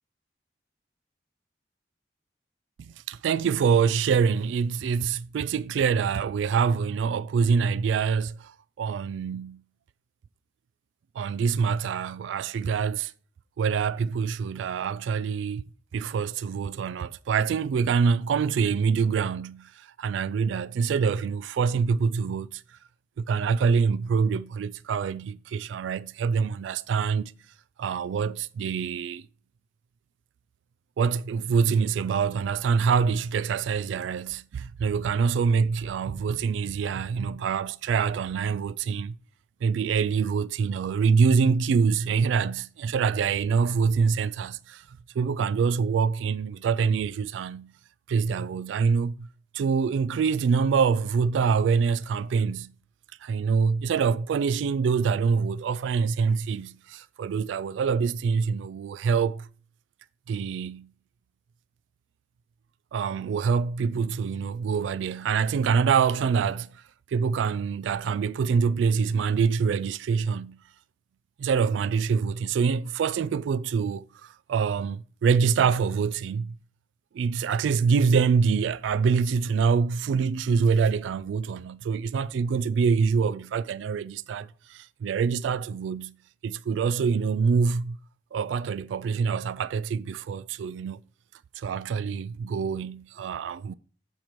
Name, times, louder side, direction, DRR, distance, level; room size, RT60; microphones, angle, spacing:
voice 1, 2.8-9.6 11.2-13.1 13.6-15.6 15.9-22.6 23.2-27.3 27.8-29.2 31.0-39.1 39.6-44.8 45.2-47.7 48.1-49.3 49.5-52.7 53.2-59.5 60.3-60.9 62.9-66.7 67.1-70.6 71.4-76.5 77.1-86.1 86.4-88.0 88.3-91.0 91.6-93.7, right 5 dB, 85° right, 0.3 m, -25 dB
13.5 x 5.1 x 3.0 m
head